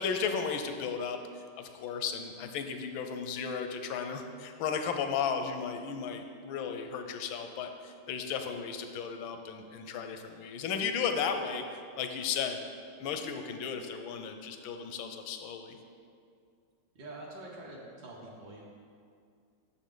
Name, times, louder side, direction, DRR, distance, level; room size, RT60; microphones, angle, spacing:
voice 1, 0.0-11.6 12.0-12.7 13.0-15.8, left 6 dB, 85° left, 6 dB, 1.4 m, -35 dB
voice 2, 16.9-18.7, right 2 dB, 65° right, -3 dB, 1.6 m, -45 dB
8.3 x 6.8 x 3.8 m, 2.3 s
omnidirectional pair, 2.1 m